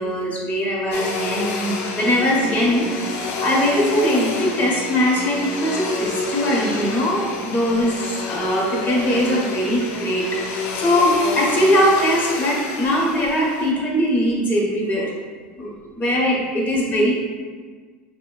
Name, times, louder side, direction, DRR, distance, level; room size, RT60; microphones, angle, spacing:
voice 1, 0.0-15.1 15.6-17.1, equal, 30° left, -3 dB, 1.0 m, -21 dB
Domestic sounds home sounds, 0.9-13.7, left 4 dB, 55° left, 0.5 m, -28 dB
5.0 x 2.2 x 2.3 m, 1.5 s
supercardioid pair, 110°, 5 cm